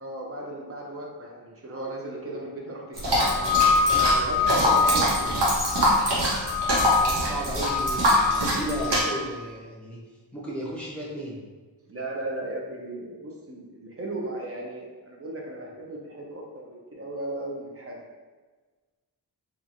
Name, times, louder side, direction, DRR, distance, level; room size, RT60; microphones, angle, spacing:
voice 1, 0.0-5.3 11.9-18.0, right 1 dB, 35° right, -1 dB, 0.6 m, -36 dB
sound 1, 2.9-9.0, equal, 85° right, 0.9 m, -24 dB
sound 2, 3.2-6.1 6.4-7.2 7.6-9.1, left 5 dB, 50° left, 0.6 m, -25 dB
voice 2, 7.0-10.0 10.3-11.4, equal, 5° left, -6 dB, 0.8 m, -34 dB
2.9 x 2.4 x 2.6 m, 1.3 s
wide cardioid pair, 90°, 42 cm